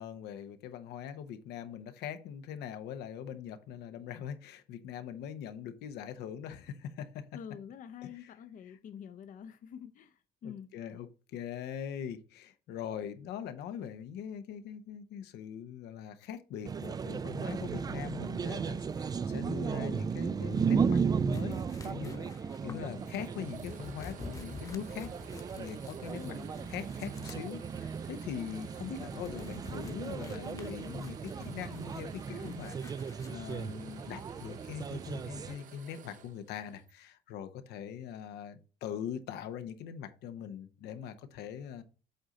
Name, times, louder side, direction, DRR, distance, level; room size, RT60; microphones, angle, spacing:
voice 1, 0.0-7.2 8.0-8.3 8.6-8.8 10.4-25.1 25.6-26.3 26.7-41.8, left 8 dB, 80° left, 0.9 m, -42 dB
voice 2, 7.3-10.7 22.6-23.1 26.1-26.5 32.3-32.6, left 8 dB, 50° left, 0.6 m, -46 dB
sound 1, 16.6-35.6, right 6 dB, 25° right, 0.3 m, -35 dB
sound 2, 21.3-33.6, left 4 dB, 20° left, 1.0 m, -52 dB
sound 3, 21.4-36.9, right 8 dB, 50° right, 0.8 m, -53 dB
7.9 x 3.8 x 4.1 m
cardioid pair, 110°, 17 cm